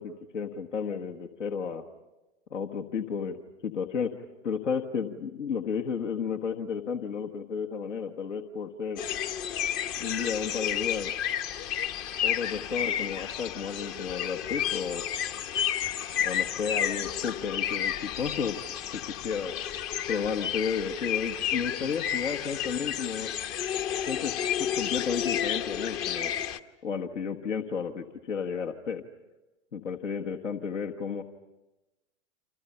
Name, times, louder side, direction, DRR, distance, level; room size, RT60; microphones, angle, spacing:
voice 1, 0.0-1.8 2.5-4.1 4.4-9.0 10.0-11.1 12.2-15.0 16.2-18.6 18.9-19.5 20.1-23.3 24.1-24.3 24.6-26.3 26.8-29.0 29.7-31.2, left 6 dB, 75° left, 4 dB, 1.5 m, -32 dB
sound 1, 9.0-26.6, left 9 dB, 40° left, 1.0 m, -31 dB
29.0 x 27.5 x 5.6 m, 1.0 s
figure-of-eight pair, 95°, 37 cm